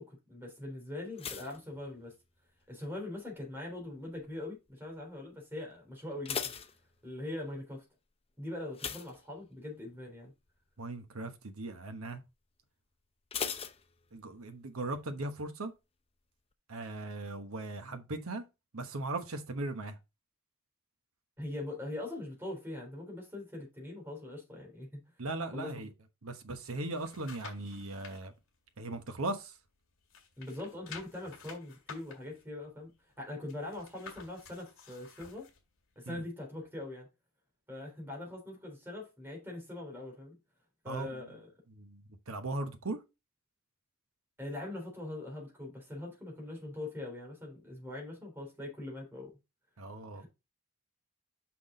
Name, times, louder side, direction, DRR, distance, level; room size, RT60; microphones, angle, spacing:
voice 1, 0.0-2.1 2.7-6.4 7.0-7.8 8.4-10.3 21.4-25.0 25.5-25.7 30.4-32.9 33.2-35.5 35.9-37.1 37.7-40.4 40.8-41.5 44.4-49.4 50.1-50.3, left 1 dB, 10° right, 3.4 m, -42 dB
sound 1, 1.1-2.6 2.9-3.4 4.0-4.4 4.7-4.8 5.2-5.3 5.9-7.4 8.7-9.9 10.2-10.5 10.9-11.0 13.3-14.5 14.8-14.9, left 7 dB, 25° left, 0.6 m, -40 dB
voice 2, 10.8-12.2 14.1-15.7 16.7-18.4 18.7-20.0 25.2-25.9 26.2-28.3 28.8-29.5 36.1-36.2 40.9-41.2 41.7-43.0 49.8-50.2, right 2 dB, 75° right, 1.1 m, -38 dB
sound 2, 26.6-28.2 28.7-29.8 30.0-35.6 36.0-36.1, left 5 dB, 65° left, 2.1 m, -51 dB
6.0 x 5.8 x 3.8 m
head